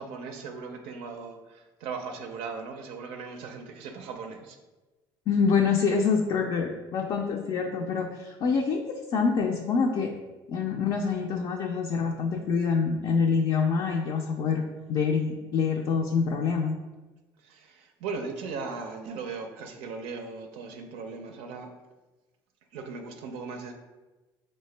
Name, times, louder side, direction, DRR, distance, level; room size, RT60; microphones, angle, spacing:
voice 1, 0.0-4.6 17.4-21.7 22.7-23.7, right 4 dB, 85° right, 4 dB, 0.4 m, -38 dB
voice 2, 5.3-10.1 10.5-14.6 14.9-16.8, left 5 dB, 55° left, 1 dB, 0.4 m, -26 dB
4.7 x 2.1 x 3.2 m, 1.2 s
cardioid pair, 100°, 10 cm